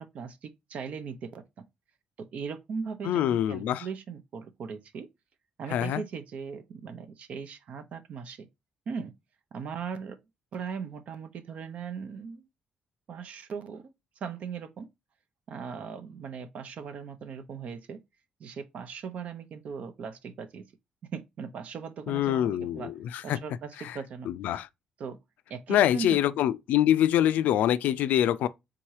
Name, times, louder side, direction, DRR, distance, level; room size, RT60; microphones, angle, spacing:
voice 1, 0.0-1.4 2.2-5.1 5.6-8.5 8.9-9.1 9.5-10.2 10.5-12.5 13.1-14.9 15.5-18.0 18.4-20.7 21.1-22.9 23.2-24.3 25.0-25.2 25.5-26.2, right 6 dB, 55° right, 0.7 m, -39 dB
voice 2, 3.0-3.9 5.7-6.0 22.1-23.4 23.8-24.0 24.3-24.7 25.7-28.5, left 11 dB, 80° left, 0.3 m, -25 dB
3.7 x 2.8 x 4.7 m
cardioid pair, 115°, 3 cm